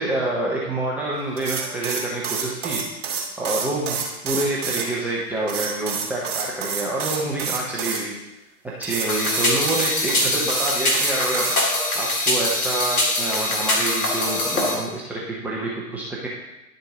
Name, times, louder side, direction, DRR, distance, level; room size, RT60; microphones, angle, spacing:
voice 1, 0.0-2.8 3.4-4.0 4.2-8.1 8.8-16.3, right 2 dB, 5° right, -6 dB, 0.4 m, -27 dB
sound 1, 1.4-4.9 5.5-8.0 8.8-11.6, right 6 dB, 40° right, 2.4 m, -28 dB
sound 2, 9.1-14.7, left 2 dB, 90° left, 2.4 m, -23 dB
10.5 x 6.5 x 3.7 m, 0.96 s
hypercardioid pair, 120°, 43 cm